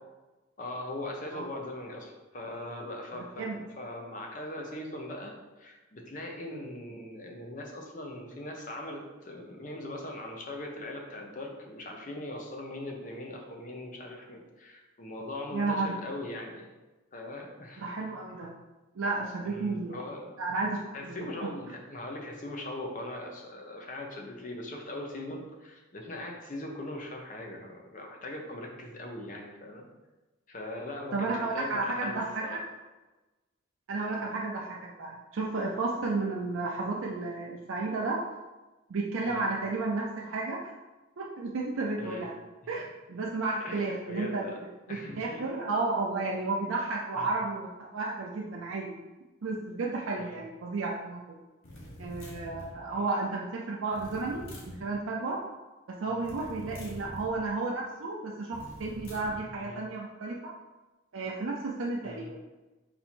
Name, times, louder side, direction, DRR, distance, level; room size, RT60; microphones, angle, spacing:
voice 1, 0.6-16.7 17.1-17.9 19.4-20.3 20.9-29.9 30.5-32.6 33.9-34.2 39.2-39.5 42.0-42.3 43.6-44.6 44.9-45.4 47.2-47.3 50.2-50.4 52.9-53.1 56.9-57.1 59.6-59.8 62.0-62.3, left 1 dB, 40° left, 1 dB, 0.6 m, -40 dB
voice 2, 15.5-15.9 17.8-18.5 19.0-19.9 20.4-21.5 31.1-32.6 33.9-38.2 38.9-40.7 41.2-42.4 42.7-44.5 44.9-49.0 49.4-51.2 52.0-55.4 55.9-60.5 61.1-62.4, right 3 dB, 80° right, -2 dB, 0.5 m, -32 dB
sound 1, 51.6-52.8 53.9-54.8 56.2-57.4 58.5-59.4, left 1 dB, 85° left, 1.1 m, -45 dB
4.2 x 2.6 x 4.3 m, 1.1 s
head